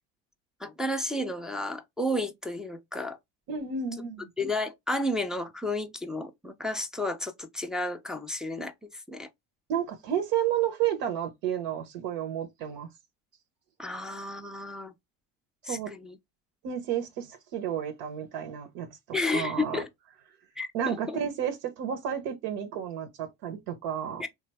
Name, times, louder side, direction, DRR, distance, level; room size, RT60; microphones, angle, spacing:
voice 1, 0.6-3.2 4.4-9.3 13.8-14.9 15.6-16.2 19.1-19.9 20.6-21.2 24.2-24.3, left 1 dB, ahead, 0.4 m, -32 dB
voice 2, 3.5-4.3 9.7-12.9 15.7-15.9 16.6-18.9 19.3-19.8 20.7-24.2, right 9 dB, 65° right, 0.8 m, -31 dB
3.2 x 2.2 x 3.3 m
hypercardioid pair, 65°, 48 cm